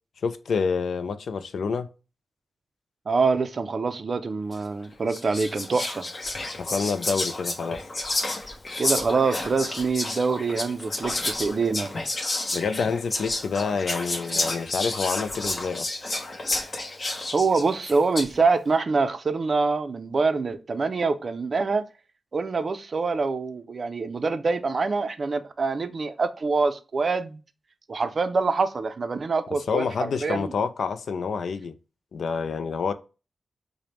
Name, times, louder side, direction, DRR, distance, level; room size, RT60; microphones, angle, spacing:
voice 1, 0.2-1.9 6.6-7.8 12.5-16.0 29.7-31.8 32.1-32.9, left 5 dB, 80° left, 0.3 m, -28 dB
voice 2, 3.1-6.1 8.8-11.9 17.3-21.8 22.3-27.4 27.9-30.5, right 4 dB, 50° right, 0.4 m, -25 dB
Whispering, 4.5-4.7 5.1-18.4, left 2 dB, 40° left, 0.8 m, -30 dB
4.9 x 2.1 x 2.9 m
wide cardioid pair, 110°, 0 cm